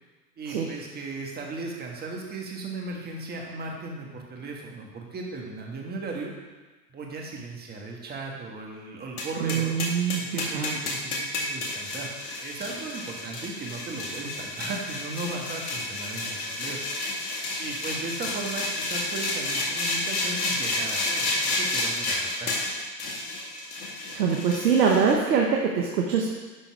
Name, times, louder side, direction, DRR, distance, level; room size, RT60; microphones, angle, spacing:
voice 1, 0.4-6.3 6.9-9.7 10.2-12.1 12.4-16.8 17.6-22.6, right 3 dB, 20° right, 0 dB, 1.5 m, -36 dB
sound 1, 9.2-25.1, left 2 dB, 60° left, 2.1 m, -30 dB
voice 2, 9.4-10.7 24.1-26.3, right 6 dB, 70° right, 0 dB, 1.2 m, -24 dB
11.5 x 3.8 x 4.7 m, 1.3 s
hypercardioid pair, 110°, 50 cm